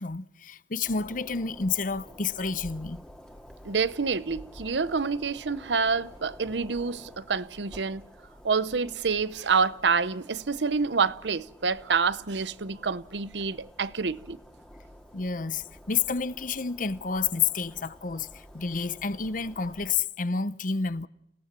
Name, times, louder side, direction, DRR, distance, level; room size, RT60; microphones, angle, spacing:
voice 1, 0.0-3.0 15.1-21.1, left 5 dB, 50° left, 0.9 m, -30 dB
sound 1, 0.8-19.9, equal, 5° left, 2.3 m, -50 dB
voice 2, 3.6-8.0 8.4-14.4, right 5 dB, 80° right, 0.8 m, -27 dB
29.0 x 17.5 x 7.4 m
head